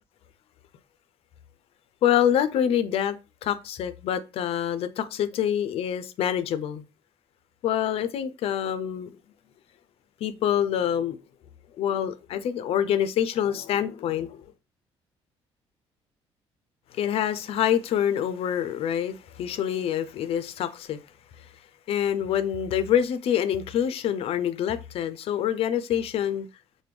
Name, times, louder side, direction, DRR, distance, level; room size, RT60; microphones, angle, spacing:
voice 1, 2.0-3.2 3.4-6.8 7.6-9.1 10.2-11.2 11.8-14.5 16.9-21.0 21.9-26.5, left 9 dB, 65° left, 0.4 m, -26 dB
3.1 x 2.1 x 3.4 m
cardioid pair, 90°, 11 cm